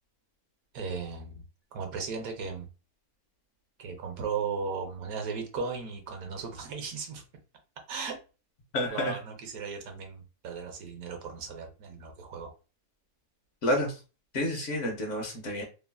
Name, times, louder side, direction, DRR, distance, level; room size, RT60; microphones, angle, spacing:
voice 1, 0.7-1.4 1.7-2.7 3.8-7.2 7.9-8.2 8.9-12.5, right 5 dB, 75° right, 1.1 m, -36 dB
voice 2, 8.7-9.1 13.6-13.9 14.3-15.6, left 1 dB, 60° left, 1.1 m, -29 dB
3.0 x 2.4 x 2.2 m
omnidirectional pair, 1.5 m